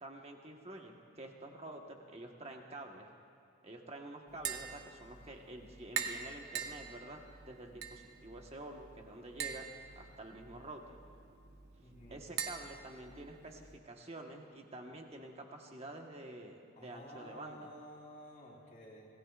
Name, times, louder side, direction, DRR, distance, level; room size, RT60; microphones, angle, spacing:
voice 1, 0.0-3.1 3.6-9.6 9.9-11.0 12.1-17.7, right 2 dB, 30° right, 2 dB, 1.3 m, -48 dB
Tap, 4.3-13.8, right 7 dB, 50° right, 1.0 m, -45 dB
voice 2, 11.8-12.2 16.8-19.1, equal, 35° left, -8 dB, 3.0 m, -52 dB
26.0 x 18.5 x 2.5 m, 2.6 s
head